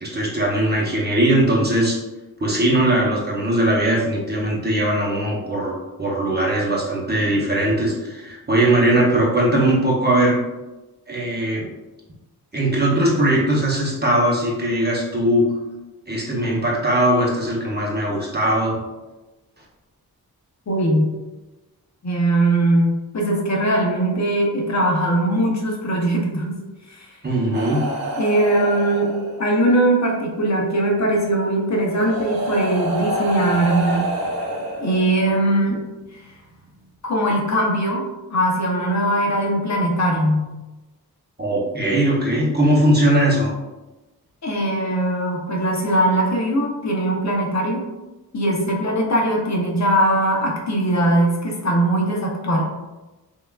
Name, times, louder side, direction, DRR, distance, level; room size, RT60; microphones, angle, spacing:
voice 1, 0.0-2.0 2.4-5.7 6.0-10.4 11.1-11.7 12.5-15.6 16.1-18.8 27.2-27.9 33.9-34.0 41.4-43.5, right 1 dB, 25° right, -4 dB, 0.7 m, -20 dB
voice 2, 20.7-21.1 22.0-26.6 26.9-27.2 28.2-29.1 29.4-34.0 34.8-35.8 36.1-36.2 37.0-38.0 38.3-40.5 44.4-47.8 48.3-52.6, right 1 dB, 45° left, -1 dB, 0.7 m, -20 dB
sound 1, 27.5-29.7 31.0-31.1 31.8-35.5 36.5-36.7, right 1 dB, 65° right, 0.7 m, -27 dB
5.5 x 2.4 x 2.3 m, 1.1 s
wide cardioid pair, 170°, 38 cm